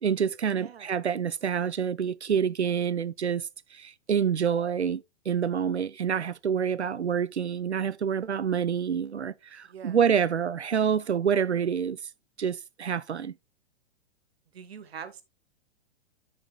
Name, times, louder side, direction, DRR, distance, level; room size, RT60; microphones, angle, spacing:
voice 1, 0.0-12.0 12.4-13.3, right 7 dB, 90° right, 0.5 m, -27 dB
voice 2, 0.5-0.9 9.6-10.0 14.5-15.2, right 7 dB, 65° right, 1.3 m, -43 dB
8.7 x 6.6 x 2.3 m
figure-of-eight pair, 105°, 33 cm